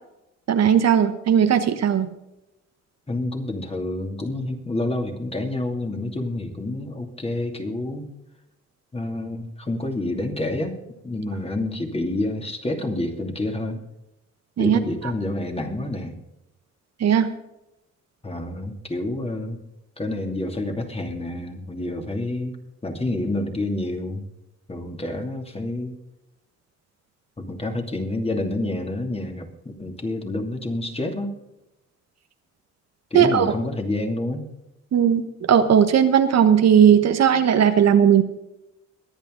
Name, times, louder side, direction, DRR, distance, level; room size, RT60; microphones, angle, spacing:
voice 1, 0.5-2.1 14.6-14.8 17.0-17.3 33.1-33.5 34.9-35.2 35.5-38.2, right 8 dB, 60° right, 8 dB, 1.3 m, -17 dB
voice 2, 3.1-8.1 8.9-10.8 11.0-13.8 14.6-16.2 18.2-19.6 20.0-22.6 22.8-24.2 24.7-25.9 27.4-31.3 33.1-34.5, left 2 dB, 20° left, 3 dB, 2.7 m, -28 dB
23.0 x 8.8 x 3.9 m, 0.91 s
cardioid pair, 90°, 30 cm